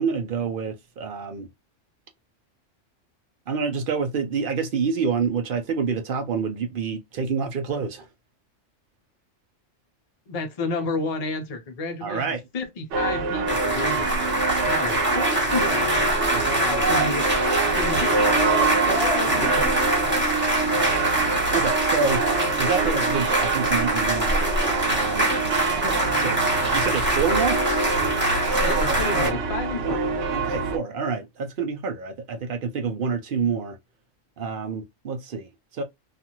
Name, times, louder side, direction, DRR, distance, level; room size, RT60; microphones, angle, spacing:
voice 1, 0.0-1.5 3.5-8.1 12.0-12.4 16.3-16.6 18.7-18.8 21.5-22.3 22.6-25.3 25.7-26.5 26.7-27.6 29.8-30.0 30.3-33.8 34.4-35.8, right 5 dB, 55° right, 0.7 m, -27 dB
voice 2, 10.3-14.3 14.7-15.9 16.6-17.3 17.6-18.6 18.9-19.8 28.6-30.0, left 3 dB, 40° left, 0.6 m, -31 dB
sound 1, 12.9-30.8, right 4 dB, 75° right, 1.0 m, -26 dB
sound 2, 13.5-29.3, right 1 dB, 10° right, 1.0 m, -24 dB
2.5 x 2.4 x 2.9 m
omnidirectional pair, 1.3 m